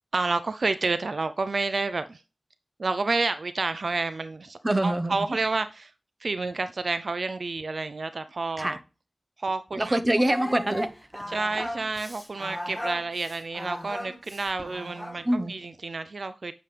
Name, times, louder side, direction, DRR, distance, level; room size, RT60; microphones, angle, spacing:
voice 1, 0.1-2.2 2.8-5.9 6.2-8.8 9.4-10.0 11.3-16.5, right 3 dB, 65° right, 0.4 m, -29 dB
voice 2, 4.6-5.2 8.6-8.8 9.8-11.2 15.2-15.5, right 1 dB, 30° right, 0.9 m, -25 dB
Singing, 10.3-15.3, equal, 5° left, 1.6 m, -37 dB
9.0 x 6.8 x 3.3 m
wide cardioid pair, 60°, 0 cm